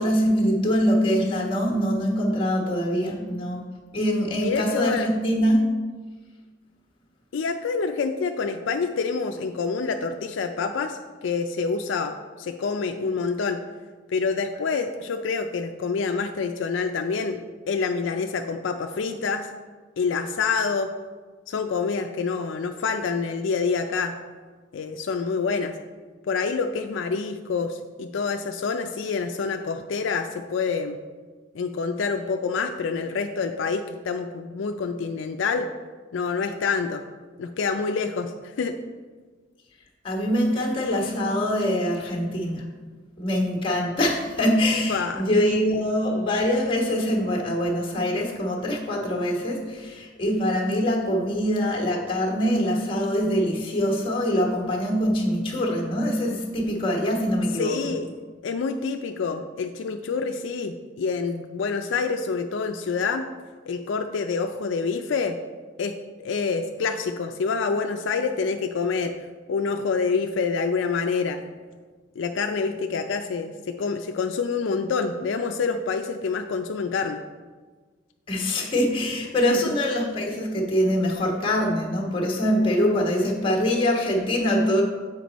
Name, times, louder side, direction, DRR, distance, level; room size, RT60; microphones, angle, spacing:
voice 1, 0.0-3.6 3.9-5.6 40.0-42.6 43.2-57.9 78.3-84.8, equal, 25° left, 0 dB, 1.3 m, -24 dB
voice 2, 4.4-5.1 7.3-13.6 14.1-17.4 17.7-19.5 20.0-20.9 21.5-24.1 24.7-25.7 26.3-31.0 31.5-35.7 36.1-37.0 37.4-38.7 44.9-45.2 57.6-58.1 58.4-63.3 63.7-65.4 65.8-69.1 69.5-71.4 72.2-77.2 79.5-79.8, left 5 dB, 75° left, 5 dB, 0.4 m, -27 dB
7.6 x 5.1 x 4.1 m, 1.4 s
head